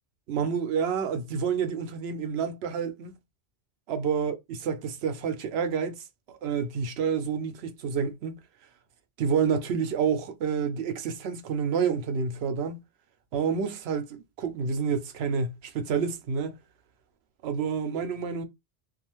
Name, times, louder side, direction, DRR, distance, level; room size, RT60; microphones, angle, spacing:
voice 1, 0.3-3.1 3.9-6.0 6.4-8.4 9.2-12.8 13.3-16.5 17.4-18.4, right 6 dB, 80° right, 0.8 m, -29 dB
2.4 x 2.3 x 3.0 m
omnidirectional pair, 1.1 m